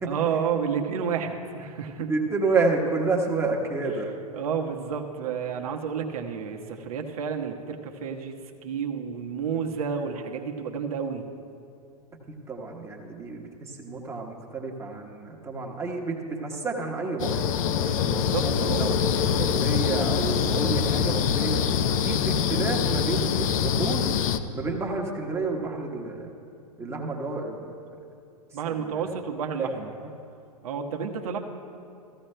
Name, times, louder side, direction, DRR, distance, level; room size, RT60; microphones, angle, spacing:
voice 1, 0.0-2.1 4.3-8.3 8.6-11.2 18.0-18.9 19.4-19.5 28.5-29.9 30.6-31.4, right 7 dB, 65° right, 3 dB, 1.1 m, -30 dB
voice 2, 2.1-4.1 12.3-17.4 18.4-24.0 24.5-26.3 26.8-27.7 28.8-29.0 29.6-29.7 30.0-30.1, right 3 dB, 15° right, -1 dB, 1.2 m, -30 dB
sound 1, 17.2-24.4, left 7 dB, 60° left, 0.7 m, -24 dB
15.5 x 14.5 x 2.2 m, 2.5 s
hypercardioid pair, 110°, 20 cm